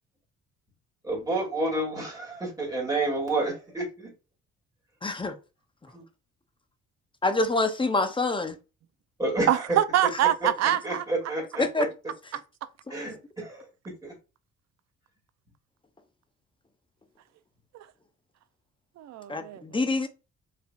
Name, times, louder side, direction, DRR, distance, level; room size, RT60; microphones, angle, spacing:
voice 1, 1.0-4.1 9.2-9.5 10.8-11.9 12.9-13.6 14.0-14.1, right 2 dB, 10° right, 2.3 m, -29 dB
voice 2, 5.0-5.3 7.2-8.6 11.6-11.9 19.3-20.1, left 2 dB, 15° left, 0.6 m, -26 dB
voice 3, 9.5-11.0 17.7-17.9 19.0-19.6, right 12 dB, 60° right, 0.5 m, -25 dB
4.6 x 3.4 x 2.4 m
cardioid pair, 90°, 30 cm